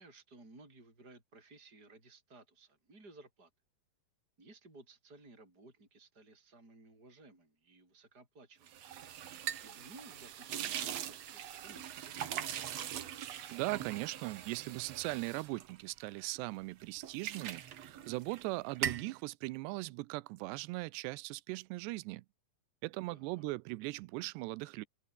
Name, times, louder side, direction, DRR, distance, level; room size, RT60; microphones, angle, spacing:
voice 1, 0.0-3.5 4.4-8.8 9.6-12.6 23.1-23.4, right 2 dB, 20° right, 7.6 m, -57 dB
sound 1, 8.7-16.4 16.8-18.5 18.7-19.1, right 10 dB, 60° right, 1.9 m, -41 dB
voice 2, 13.5-22.2 22.8-24.9, right 22 dB, 85° right, 2.8 m, -39 dB
omnidirectional pair, 4.8 m